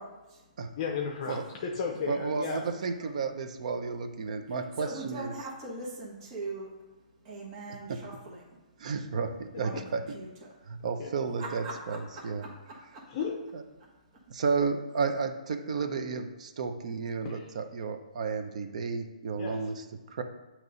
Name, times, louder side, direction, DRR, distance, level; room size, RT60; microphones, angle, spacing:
voice 1, 0.0-0.4 3.0-3.1 4.8-6.7 7.2-8.6 9.6-10.5 11.4-13.0, right 2 dB, 35° right, -3 dB, 1.2 m, -41 dB
voice 2, 0.7-2.6 9.5-9.9 11.0-11.1 13.1-13.4 17.3-17.5 19.4-19.7, left 6 dB, 35° left, 0 dB, 0.6 m, -34 dB
voice 3, 2.1-5.3 7.9-8.0 8.8-10.0 10.7-12.4 13.5-13.6 14.3-19.8 20.1-20.2, right 5 dB, 55° right, 7 dB, 0.6 m, -32 dB
8.2 x 3.0 x 3.9 m, 1.1 s
hypercardioid pair, 160°, 4 cm